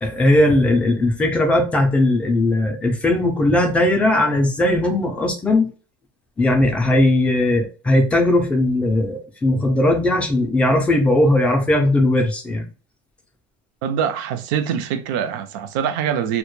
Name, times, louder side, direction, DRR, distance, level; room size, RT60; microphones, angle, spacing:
voice 1, 0.0-5.7 6.4-12.7, left 1 dB, 10° left, 0.4 m, -18 dB
voice 2, 13.8-16.4, right 8 dB, 75° right, 0.4 m, -24 dB
2.1 x 2.1 x 3.0 m
cardioid pair, 165°, 11 cm